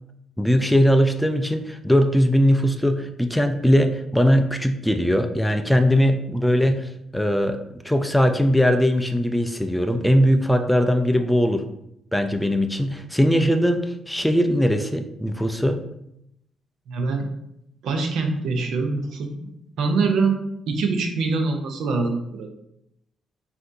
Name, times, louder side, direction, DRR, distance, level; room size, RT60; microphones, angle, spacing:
voice 1, 0.4-7.6 7.8-11.7 12.1-15.8, equal, 5° left, 6 dB, 0.4 m, -20 dB
voice 2, 16.9-17.3 17.8-19.5 19.8-20.4 20.7-22.5, right 4 dB, 75° right, 4 dB, 0.7 m, -24 dB
5.8 x 2.6 x 2.7 m, 0.80 s
cardioid pair, 90°, 0 cm